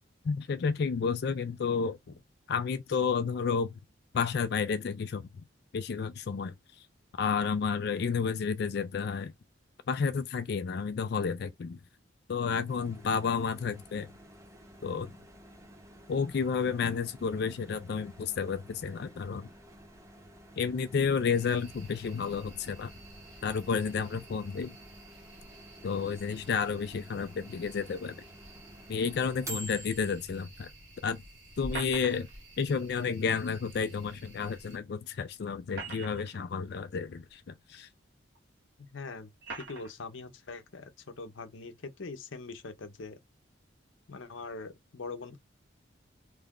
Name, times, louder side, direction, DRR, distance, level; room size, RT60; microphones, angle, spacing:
voice 1, 0.2-2.0 2.5-3.8 4.1-5.3 5.7-6.5 7.2-9.3 9.9-11.8 12.3-14.1 14.8-15.2 16.1-19.5 20.6-22.9 23.4-24.7 25.8-28.2 28.9-30.7 31.0-31.2 31.6-32.3 32.6-37.9, left 5 dB, 55° left, 0.3 m, -31 dB
Microwave oven, 12.7-30.4, right 1 dB, 15° right, 0.7 m, -50 dB
sound 1, 21.3-34.8, right 2 dB, 85° right, 1.2 m, -54 dB
sound 2, 31.6-32.4 34.1-34.2 35.5-36.4 37.3-37.4 38.3-38.4 39.4-39.9, right 2 dB, 55° right, 1.3 m, -41 dB
voice 2, 38.8-39.3 39.6-40.9 41.2-43.2 44.1-45.4, left 3 dB, 75° left, 0.7 m, -42 dB
3.2 x 2.4 x 3.6 m
head